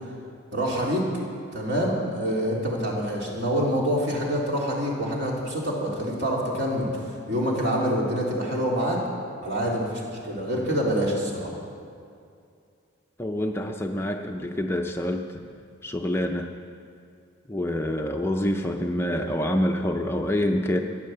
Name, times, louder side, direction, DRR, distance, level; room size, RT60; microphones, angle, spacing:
voice 1, 0.5-1.1 1.5-6.9 7.3-9.0 9.4-11.5, equal, 55° right, -3 dB, 3.4 m, -26 dB
voice 2, 13.2-15.4 15.8-16.6 17.5-20.8, left 1 dB, 10° left, 3 dB, 0.6 m, -26 dB
15.0 x 11.0 x 7.9 m, 2.4 s
head